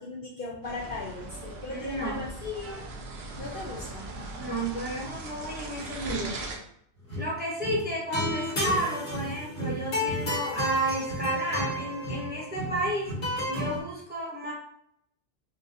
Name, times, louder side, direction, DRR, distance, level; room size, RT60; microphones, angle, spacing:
voice 1, 0.0-2.8 3.4-4.2, left 3 dB, 55° left, -3 dB, 0.7 m, -38 dB
sound 1, 0.6-6.6, right 2 dB, 65° right, 0.8 m, -39 dB
voice 2, 1.7-2.3 4.4-6.5 7.2-13.1 13.5-14.5, right 1 dB, 10° right, -5 dB, 0.8 m, -32 dB
sound 2, 7.0-7.3 7.6-13.8, left 1 dB, 75° left, 1.5 m, -32 dB
4.0 x 2.4 x 2.6 m, 0.68 s
omnidirectional pair, 1.2 m